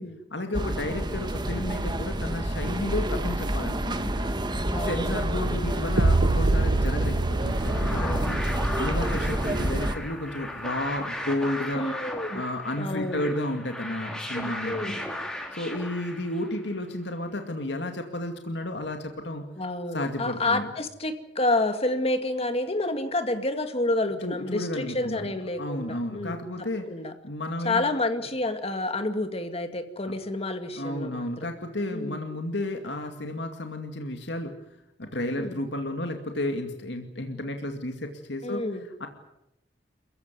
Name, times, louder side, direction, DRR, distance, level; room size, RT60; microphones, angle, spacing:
voice 1, 0.3-4.3 4.8-8.4 8.8-11.8 12.3-15.0 15.5-19.4 19.9-20.7 24.2-26.9 27.2-27.9 30.8-34.5 35.0-38.6 39.0-39.1, left 1 dB, 70° left, 5 dB, 2.4 m, -32 dB
sound 1, 0.5-9.9, right 1 dB, 25° right, 1.6 m, -28 dB
voice 2, 4.7-5.2 8.0-8.2 11.7-12.4 12.8-13.3 14.3-15.0 19.6-27.1 27.6-31.3 31.9-32.3 35.3-35.6 38.4-38.9, left 2 dB, 35° left, 8 dB, 2.1 m, -29 dB
sound 2, 6.0-10.0, right 2 dB, 85° right, 1.0 m, -26 dB
sound 3, 7.3-16.7, left 1 dB, 5° left, 3.7 m, -36 dB
28.5 x 15.5 x 9.5 m, 0.88 s
head